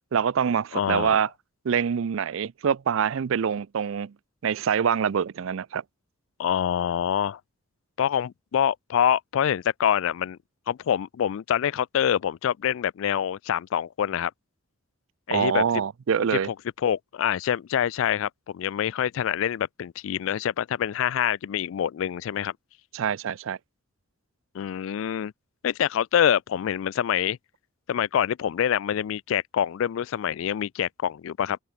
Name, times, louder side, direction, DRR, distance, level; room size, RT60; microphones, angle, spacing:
voice 1, 0.1-1.3 1.6-4.1 4.4-5.8 15.3-16.5 22.9-23.6, right 7 dB, 65° right, 0.4 m, -25 dB
voice 2, 0.7-1.2 6.4-7.4 8.0-10.4 10.7-14.3 15.3-15.6 16.3-16.5 16.8-22.5 24.5-25.3 25.6-27.4 27.9-31.6, left 9 dB, 65° left, 0.3 m, -26 dB
open air
head